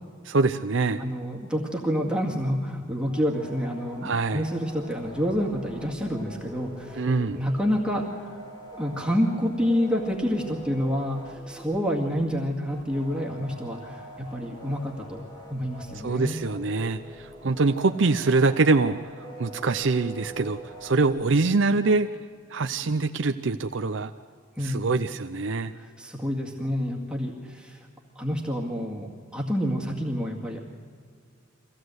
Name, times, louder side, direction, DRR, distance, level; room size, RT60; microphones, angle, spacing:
voice 1, 0.3-1.0 4.0-4.5 6.9-7.4 16.0-19.0 19.4-22.1 22.5-24.1 24.6-25.7, right 3 dB, 60° right, 8 dB, 0.6 m, -24 dB
voice 2, 1.0-7.0 7.3-8.4 8.7-15.2 15.5-16.4 24.6-24.9 26.0-27.9 28.2-30.6, equal, 5° right, -2 dB, 2.1 m, -28 dB
sound 1, 3.1-21.4, right 1 dB, 20° left, 2.1 m, -44 dB
24.0 x 16.5 x 7.9 m, 2.1 s
head